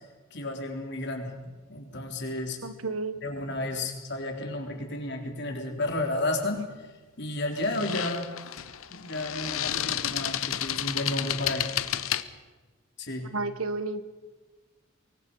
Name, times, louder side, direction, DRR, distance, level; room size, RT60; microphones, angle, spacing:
voice 1, 0.3-2.6 3.2-6.9 7.2-8.3 8.9-11.7 13.0-13.3, left 2 dB, 55° left, 2 dB, 3.9 m, -32 dB
voice 2, 2.6-3.2 13.3-14.0, right 3 dB, 90° right, 12 dB, 1.4 m, -31 dB
sound 1, 5.9-6.1 7.6-12.2, left 11 dB, 85° left, 1.0 m, -31 dB
24.0 x 23.5 x 5.6 m, 1.3 s
head